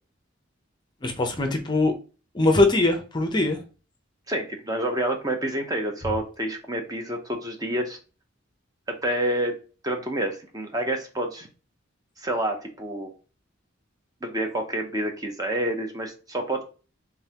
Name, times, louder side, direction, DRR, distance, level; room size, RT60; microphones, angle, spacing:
voice 1, 1.0-1.9 2.3-3.6, left 2 dB, 20° left, 0.6 m, -21 dB
voice 2, 4.3-8.0 8.9-9.6 9.8-11.5 12.2-13.1 14.2-16.6, right 1 dB, 20° right, 0.7 m, -28 dB
3.8 x 3.6 x 2.8 m
head